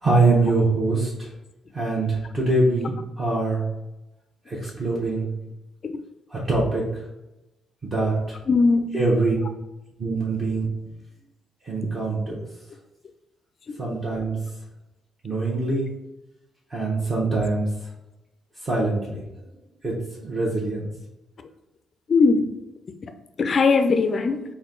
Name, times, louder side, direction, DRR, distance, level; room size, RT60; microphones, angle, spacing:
voice 1, 0.0-1.3 1.7-3.6 4.5-5.3 6.3-6.8 7.8-8.1 8.9-9.4 10.0-10.6 11.6-12.4 13.8-14.4 15.2-15.9 16.7-17.7 18.6-19.2 19.8-19.9 20.2-20.9, right 2 dB, 35° right, 1.0 m, -23 dB
voice 2, 8.5-9.0 22.1-22.5 23.4-24.4, left 4 dB, 45° left, 0.3 m, -19 dB
4.2 x 2.2 x 3.8 m
cardioid pair, 90°, 0 cm